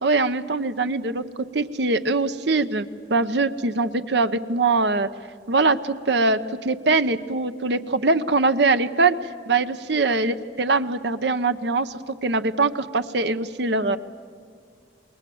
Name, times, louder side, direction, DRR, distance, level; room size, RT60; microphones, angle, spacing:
voice 1, 0.0-5.1 5.5-9.2 9.5-11.9 12.2-14.0, right 3 dB, 65° right, 10 dB, 0.9 m, -22 dB
28.5 x 21.5 x 7.8 m, 2.1 s
head